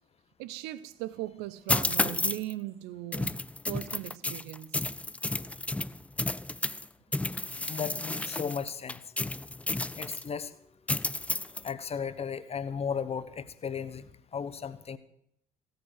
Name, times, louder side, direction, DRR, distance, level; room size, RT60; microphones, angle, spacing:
voice 1, 0.4-3.4 3.7-4.8, right 16 dB, 65° right, 16 dB, 0.8 m, -38 dB
sound 1, 1.7-2.5 3.1-6.8 7.1-10.3 10.9-11.7, left 2 dB, 5° left, 0.5 m, -31 dB
voice 2, 7.7-9.0 10.0-10.5 11.6-15.0, left 6 dB, 35° left, 15 dB, 1.2 m, -35 dB
16.5 x 9.4 x 6.6 m, 0.72 s
figure-of-eight pair, 50°, 18 cm